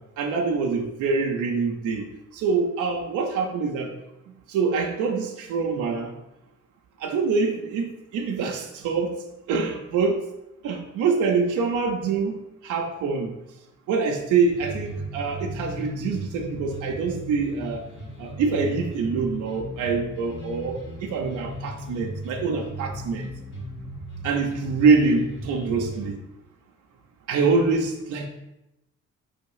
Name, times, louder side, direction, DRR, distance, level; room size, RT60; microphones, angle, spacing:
voice 1, 0.2-3.9 4.5-6.1 7.0-9.1 9.5-10.2 10.6-12.4 12.6-13.3 13.9-17.8 18.2-23.3 24.2-26.2 27.3-28.3, right 4 dB, 85° right, 1 dB, 0.8 m, -25 dB
sound 1, 14.5-26.1, equal, 40° left, 2.1 m, -36 dB
5.1 x 3.5 x 5.6 m, 0.90 s
cardioid pair, 90°, 30 cm